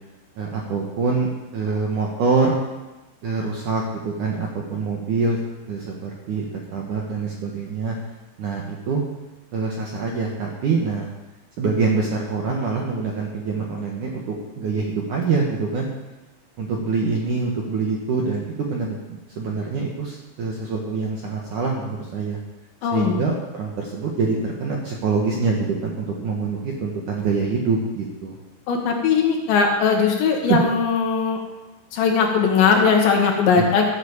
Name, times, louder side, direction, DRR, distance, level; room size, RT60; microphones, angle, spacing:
voice 1, 0.4-2.6 3.2-5.4 5.7-6.4 6.7-8.0 8.4-9.0 9.5-11.1 11.6-15.9 16.6-19.0 19.4-22.4 22.9-28.4 30.5-30.6 33.6-33.7, right 4 dB, 60° right, -1 dB, 2.2 m, -25 dB
voice 2, 22.8-23.2 28.7-31.4 31.9-33.9, left 5 dB, 70° left, 1 dB, 4.0 m, -19 dB
15.5 x 8.5 x 7.3 m, 1.1 s
omnidirectional pair, 5.5 m